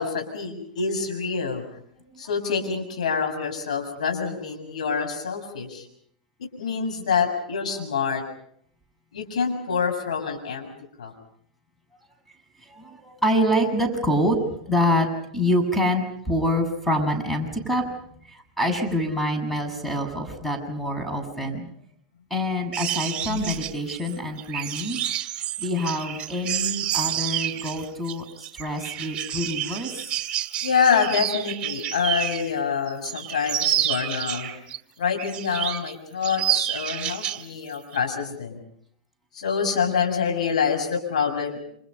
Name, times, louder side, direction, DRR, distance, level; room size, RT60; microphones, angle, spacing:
voice 1, 0.0-1.6 2.2-5.9 6.4-8.2 9.1-10.7 11.0-11.1 23.3-23.5 30.6-34.5 35.0-38.6 39.3-41.6, left 6 dB, 75° left, 3 dB, 7.3 m, -26 dB
voice 2, 12.6-15.1 15.3-17.9 18.3-21.7 22.3-25.0 25.6-30.0, equal, 5° left, 5 dB, 7.4 m, -26 dB
sound 1, 22.7-32.5 32.9-34.8 35.2-35.9 36.2-37.4 37.7-38.0, right 12 dB, 30° right, 2.5 m, -29 dB
29.0 x 27.5 x 5.6 m, 0.67 s
hypercardioid pair, 100°, 4 cm